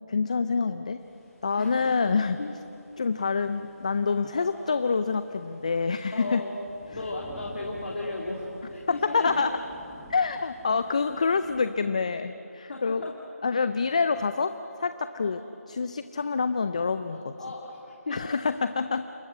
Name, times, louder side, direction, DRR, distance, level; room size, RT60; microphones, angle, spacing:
voice 1, 0.1-1.0 1.4-2.4 3.0-6.4 8.9-9.6 10.1-13.0 13.4-15.4 15.7-17.3 18.1-19.1, left 4 dB, 25° left, 11 dB, 0.5 m, -27 dB
sound 1, 1.0-11.7, left 1 dB, 5° left, 1.8 m, -51 dB
voice 2, 1.6-2.1 2.4-2.5 3.0-3.1 4.3-4.7 6.1-6.5 6.9-9.5 12.6-13.1 15.2-15.5 17.4-18.2, left 2 dB, 45° left, -2 dB, 2.9 m, -36 dB
28.0 x 22.0 x 7.8 m, 2.9 s
figure-of-eight pair, 165°, 8 cm